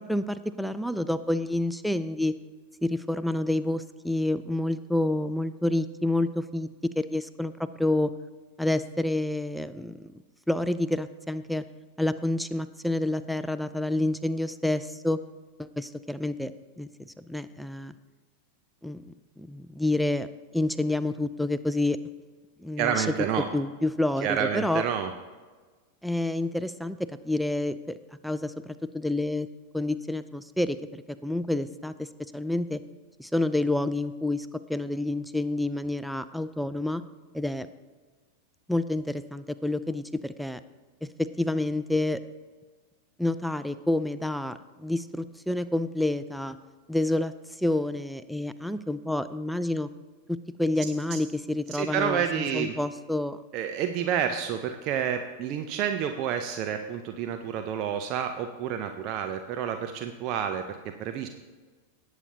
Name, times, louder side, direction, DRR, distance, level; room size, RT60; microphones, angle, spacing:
voice 1, 0.1-2.3 2.8-8.1 8.6-10.1 10.5-11.7 12.0-15.2 15.6-16.5 16.8-16.9 17.2-17.9 18.8-20.3 20.5-22.0 22.6-23.1 23.5-24.8 26.0-28.0 28.2-29.5 29.7-30.8 31.1-32.1 32.3-32.8 33.2-37.0 37.3-37.7 38.7-40.6 41.0-42.2 43.2-46.6 46.9-49.9 50.3-53.4, left 1 dB, ahead, 13 dB, 0.4 m, -28 dB
voice 2, 22.8-23.5 24.2-25.1 51.1-51.2 51.7-52.8 53.5-61.3, right 8 dB, 40° right, 6 dB, 0.6 m, -29 dB
18.0 x 8.1 x 2.8 m, 1.4 s
figure-of-eight pair, 90°, 0 cm